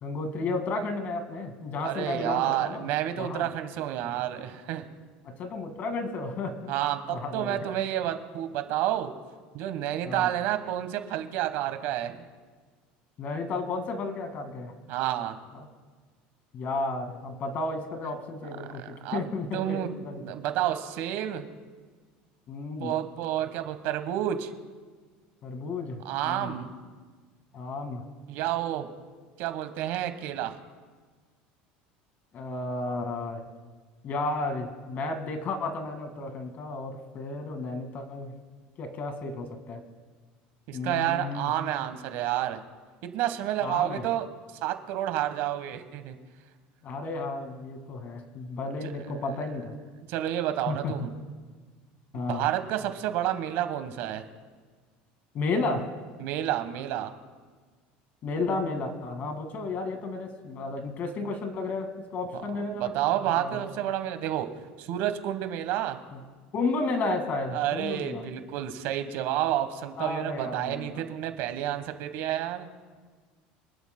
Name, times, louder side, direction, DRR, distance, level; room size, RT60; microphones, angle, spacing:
voice 1, 0.0-2.9 3.2-3.5 5.2-6.7 7.1-7.6 10.0-10.3 13.2-14.7 15.5-15.7 16.5-20.2 22.5-22.9 25.4-26.5 27.5-28.0 32.3-33.4 34.0-38.3 38.8-39.8 40.7-41.5 43.6-44.0 46.8-49.7 50.7-50.9 52.1-52.5 55.3-55.9 58.2-63.7 66.1-66.2 66.5-68.3 70.0-71.0, left 3 dB, 45° left, 6 dB, 1.9 m, -33 dB
voice 2, 1.8-4.9 6.7-9.1 9.5-12.2 14.9-15.4 18.8-19.2 19.5-19.9 20.2-21.5 22.8-24.5 26.0-26.7 28.3-28.9 29.4-30.5 40.7-42.6 43.0-44.3 44.6-46.2 48.8-49.1 50.1-51.1 52.1-54.2 56.2-57.1 62.3-64.5 64.8-66.0 67.5-72.7, right 12 dB, 70° right, 9 dB, 1.2 m, -30 dB
25.5 x 11.5 x 2.2 m, 1.5 s
supercardioid pair, 115°, 4 cm